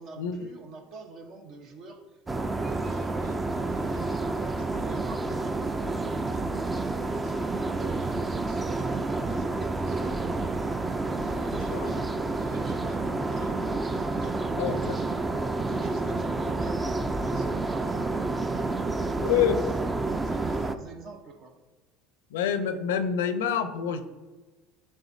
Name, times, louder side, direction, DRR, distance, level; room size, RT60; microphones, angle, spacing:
voice 1, 0.0-13.7 13.9-19.7 20.0-21.6, right 4 dB, 55° right, 4 dB, 1.0 m, -47 dB
sound 1, 2.3-20.8, right 3 dB, 20° right, 0.4 m, -29 dB
voice 2, 11.7-12.0 14.6-15.0 19.2-19.6 22.3-24.0, left 8 dB, 85° left, 9 dB, 0.5 m, -27 dB
10.0 x 3.5 x 2.7 m, 1.2 s
hypercardioid pair, 80°, 0 cm